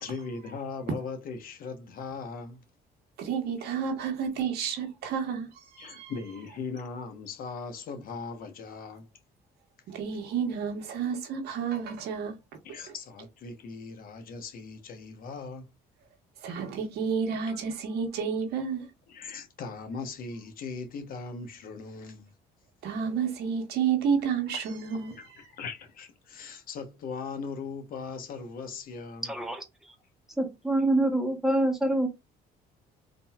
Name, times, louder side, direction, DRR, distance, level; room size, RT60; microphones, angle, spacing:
voice 1, 0.0-2.6 5.8-9.1 12.6-15.7 19.1-22.3 24.5-24.6 25.1-29.3, left 4 dB, 60° left, 1.0 m, -39 dB
voice 2, 3.2-6.1 9.9-12.3 16.4-18.9 22.8-25.4, right 6 dB, 70° right, 1.3 m, -30 dB
voice 3, 29.2-29.6 30.4-32.1, right 1 dB, ahead, 1.2 m, -26 dB
3.8 x 2.7 x 2.3 m
cardioid pair, 110°, 17 cm